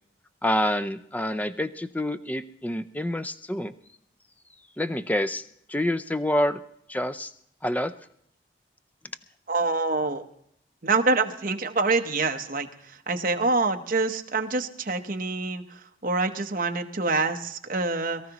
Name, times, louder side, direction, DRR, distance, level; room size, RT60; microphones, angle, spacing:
voice 1, 0.4-3.7 4.8-5.4 5.7-6.6 6.9-7.3 7.6-7.9, left 1 dB, 10° left, 11 dB, 0.4 m, -27 dB
voice 2, 9.5-10.2 10.8-18.2, right 3 dB, 50° right, 5 dB, 0.9 m, -26 dB
22.5 x 14.0 x 3.0 m, 0.70 s
head